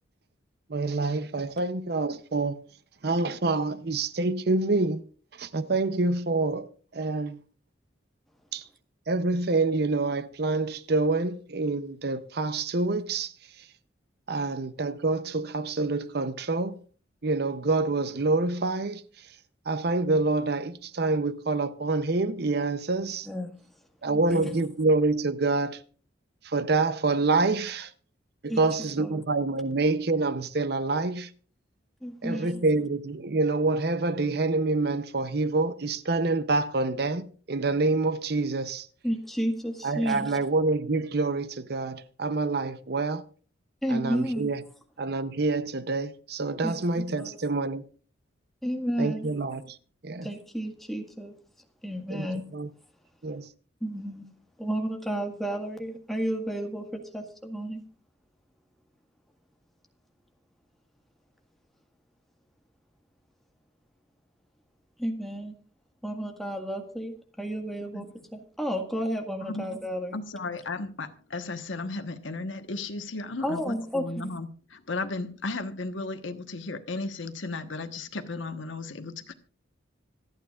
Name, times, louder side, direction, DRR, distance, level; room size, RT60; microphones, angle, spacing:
voice 1, 0.7-2.6 3.0-5.0 5.4-6.7 6.9-7.4 8.5-8.6 9.1-13.3 14.3-16.8 17.2-19.0 19.7-23.3 24.0-25.8 26.4-27.9 28.4-31.3 32.2-38.9 39.8-43.2 43.9-44.6 45.0-47.8 49.0-49.8 50.0-50.3 52.1-52.3 52.5-52.7 53.2-53.5, right 3 dB, 55° right, 0.7 m, -27 dB
voice 2, 24.1-24.6 28.5-29.2 32.0-32.6 39.0-40.4 43.8-44.5 46.6-47.3 48.6-49.3 50.2-51.3 51.8-52.5 53.8-54.3 54.6-57.8 65.0-65.5 66.0-70.2 73.4-74.4, equal, ahead, 1.7 m, -32 dB
voice 3, 70.1-79.3, left 3 dB, 85° left, 1.2 m, -35 dB
26.0 x 9.1 x 2.5 m
head